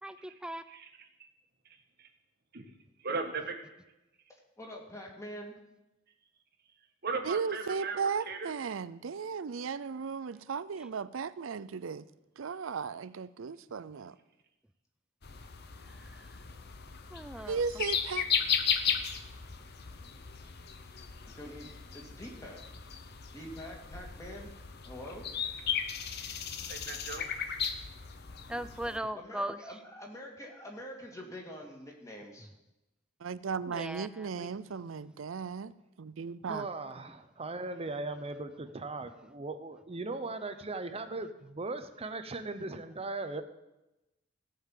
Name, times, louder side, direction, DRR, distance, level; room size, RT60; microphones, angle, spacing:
voice 1, 0.0-0.7 15.8-16.4 17.1-17.6 28.5-29.6 33.7-34.5, right 1 dB, 5° right, 0.5 m, -39 dB
voice 2, 3.0-3.6 7.0-8.0 8.3-8.5 26.7-27.3, right 4 dB, 55° right, 1.6 m, -37 dB
voice 3, 4.6-5.5 21.3-22.6 23.3-24.5 24.8-25.3 29.2-32.5, equal, 15° left, 2.3 m, -45 dB
voice 4, 7.2-12.1 12.4-14.2 17.5-18.3 33.2-35.7 36.0-36.7, right 5 dB, 85° right, 0.5 m, -36 dB
sound 1, 15.2-29.0, left 7 dB, 55° left, 0.9 m, -36 dB
voice 5, 36.4-43.4, right 3 dB, 30° right, 0.8 m, -38 dB
16.5 x 5.5 x 7.5 m
head